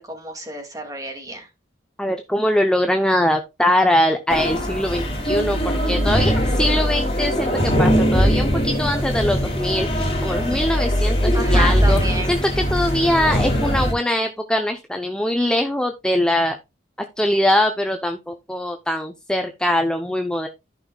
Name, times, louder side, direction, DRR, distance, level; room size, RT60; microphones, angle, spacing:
voice 1, 0.0-1.5 11.3-12.4, right 1 dB, 20° right, 2.3 m, -30 dB
voice 2, 2.0-5.6 5.9-7.5 7.8-12.0 12.3-16.6 17.2-20.5, left 1 dB, 5° left, 0.7 m, -22 dB
sound 1, 4.3-13.9, equal, 35° left, 3.2 m, -20 dB
14.5 x 5.5 x 2.3 m
head